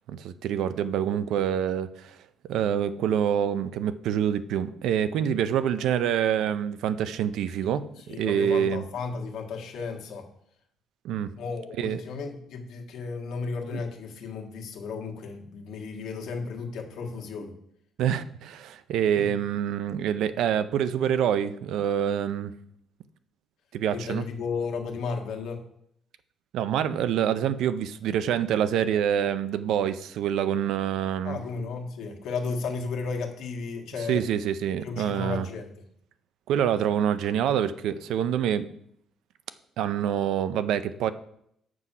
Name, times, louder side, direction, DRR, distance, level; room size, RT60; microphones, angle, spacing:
voice 1, 0.1-2.1 2.5-8.8 11.0-11.3 11.8-12.0 18.0-22.5 23.7-24.2 26.5-31.4 34.1-35.5 36.5-38.7 39.8-41.1, right 9 dB, 70° right, 13 dB, 0.5 m, -26 dB
voice 2, 8.0-10.3 11.4-17.5 19.2-19.3 23.9-25.6 31.2-34.2 34.8-35.7, left 4 dB, 70° left, 3 dB, 1.5 m, -34 dB
7.4 x 6.1 x 5.5 m, 0.71 s
cardioid pair, 175°, 0 cm